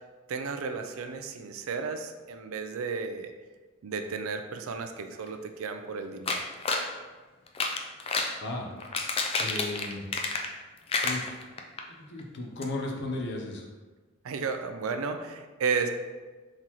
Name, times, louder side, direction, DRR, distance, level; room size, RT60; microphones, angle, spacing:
voice 1, 0.3-3.3 3.8-6.5 14.2-15.9, right 5 dB, 90° right, 7 dB, 0.4 m, -33 dB
sound 1, 6.3-6.9 7.5-8.4 8.8-10.6 10.9-11.8 12.2-12.3 12.6-12.7, left 3 dB, 30° left, 0.4 m, -30 dB
voice 2, 9.4-10.1 11.0-11.3 11.9-13.7, left 2 dB, 60° left, 1 dB, 0.7 m, -35 dB
4.3 x 3.8 x 3.0 m, 1.3 s
head